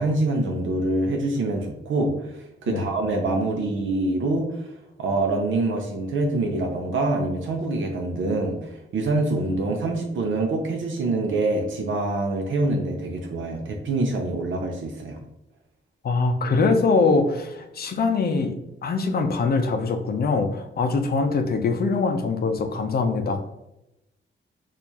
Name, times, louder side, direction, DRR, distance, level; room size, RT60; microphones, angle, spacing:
voice 1, 0.0-2.1 2.6-4.5 5.0-15.2, right 2 dB, 75° right, 2 dB, 0.6 m, -25 dB
voice 2, 16.0-18.6 18.8-23.4, left 4 dB, 50° left, 6 dB, 0.5 m, -23 dB
4.5 x 2.5 x 2.8 m, 0.89 s
wide cardioid pair, 140°, 20 cm